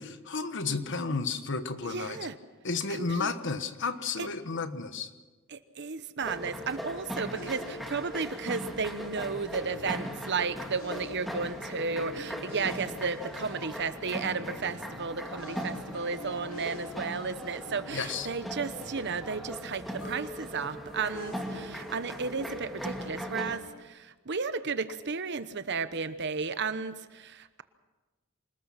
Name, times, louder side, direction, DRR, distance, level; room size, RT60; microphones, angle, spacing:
voice 1, 0.0-2.2 2.6-5.1 17.9-18.3, left 4 dB, 60° left, 10 dB, 1.3 m, -32 dB
voice 2, 1.8-2.4 2.9-3.3 4.2-4.3 5.5-27.6, right 5 dB, 55° right, 12 dB, 1.0 m, -33 dB
sound 1, 6.2-23.6, equal, ahead, 1.9 m, -39 dB
sound 2, 7.3-23.8, left 2 dB, 75° left, 2.3 m, -48 dB
26.0 x 19.5 x 5.8 m, 1.2 s
head